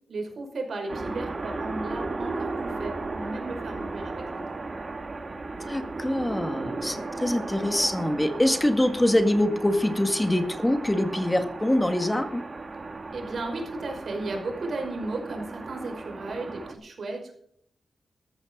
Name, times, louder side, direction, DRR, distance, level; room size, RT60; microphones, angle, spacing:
voice 1, 0.1-4.4 13.1-17.3, right 2 dB, 70° right, 3 dB, 5.3 m, -35 dB
sound 1, 0.9-16.8, right 3 dB, 40° right, 2.2 m, -35 dB
voice 2, 5.7-12.4, left 1 dB, 15° left, 7 dB, 1.9 m, -24 dB
14.5 x 14.0 x 3.9 m, 0.66 s
cardioid pair, 70°, 0 cm